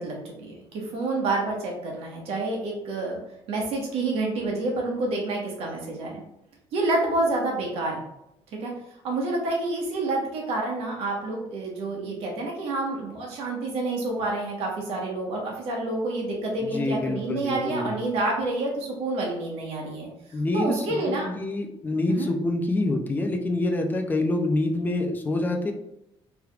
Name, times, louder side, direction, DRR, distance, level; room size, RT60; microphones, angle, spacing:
voice 1, 0.0-3.2 3.5-6.2 6.7-8.0 8.6-8.7 9.0-20.1 20.5-21.3 22.1-22.3, right 2 dB, 70° right, -1 dB, 1.2 m, -28 dB
voice 2, 16.6-17.9 20.3-25.7, left 2 dB, 15° left, 3 dB, 0.4 m, -26 dB
4.7 x 3.3 x 2.4 m, 0.83 s
cardioid pair, 170°, 11 cm